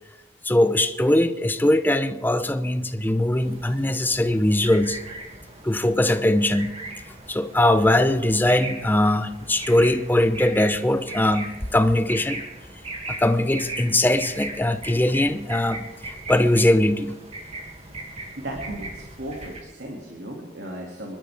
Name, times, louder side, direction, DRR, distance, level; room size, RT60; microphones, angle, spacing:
voice 1, 0.4-5.0 5.6-6.7 7.3-12.4 13.1-17.2, left 1 dB, 10° left, 10 dB, 0.7 m, -21 dB
sound 1, 3.4-19.6, right 2 dB, 35° right, 2.4 m, -38 dB
voice 2, 18.4-21.2, right 1 dB, 80° right, 0 dB, 2.6 m, -36 dB
28.0 x 12.5 x 3.6 m, 1.1 s
head